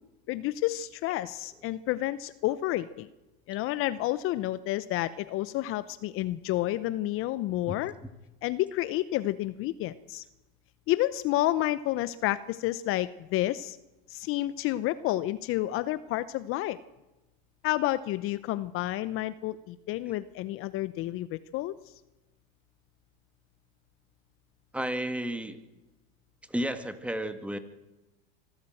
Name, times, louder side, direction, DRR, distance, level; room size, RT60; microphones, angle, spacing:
voice 1, 0.3-3.1 3.5-7.9 8.4-10.2 10.9-13.8 14.1-16.8 17.6-21.7, left 15 dB, 45° left, 15 dB, 0.8 m, -30 dB
voice 2, 24.7-25.6 26.5-27.6, right 1 dB, 5° right, 10 dB, 1.7 m, -32 dB
25.0 x 13.0 x 7.8 m, 1.0 s
supercardioid pair, 110°, 30 cm